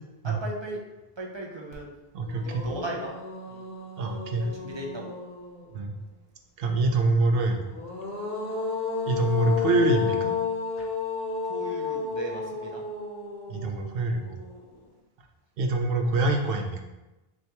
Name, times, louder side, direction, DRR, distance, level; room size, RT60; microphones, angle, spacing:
voice 1, 0.2-0.8 1.2-1.9 2.4-3.1 3.5-3.6 4.4-5.1 11.5-12.8, right 1 dB, 35° right, -1 dB, 0.5 m, -37 dB
sound 1, 1.7-1.8 2.2-5.9 7.5-14.8, left 5 dB, 65° left, 1.0 m, -33 dB
voice 2, 2.1-2.7 4.0-4.5 5.7-5.9 6.6-7.7 9.1-10.3 10.8-10.9 13.5-14.4 15.6-16.8, right 2 dB, 70° right, 3 dB, 0.8 m, -25 dB
6.0 x 2.3 x 2.9 m, 1.1 s
omnidirectional pair, 1.0 m